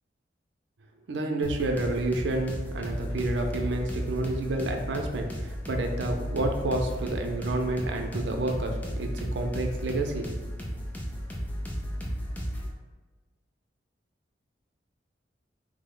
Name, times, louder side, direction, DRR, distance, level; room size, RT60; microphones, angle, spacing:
voice 1, 1.1-10.3, right 2 dB, 80° right, 4 dB, 0.4 m, -30 dB
sound 1, 1.4-12.7, equal, 10° left, 0.3 m, -34 dB
3.1 x 2.0 x 3.6 m, 1.3 s
head